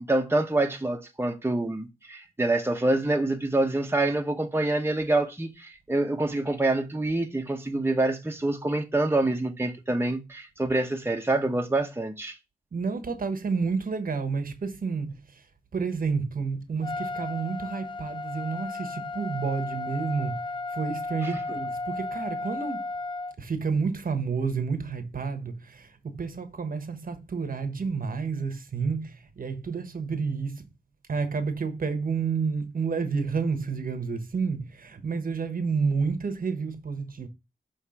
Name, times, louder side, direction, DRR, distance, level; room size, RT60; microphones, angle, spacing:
voice 1, 0.1-12.4 21.2-21.3, right 2 dB, 15° right, 1.0 m, -26 dB
voice 2, 12.7-15.4 15.7-20.4 20.7-22.8 23.4-30.6 31.1-37.3, right 5 dB, 60° right, 1.1 m, -30 dB
Trumpet, 16.8-23.3, left 3 dB, 30° left, 0.4 m, -34 dB
6.4 x 3.2 x 5.7 m
cardioid pair, 65°, 16 cm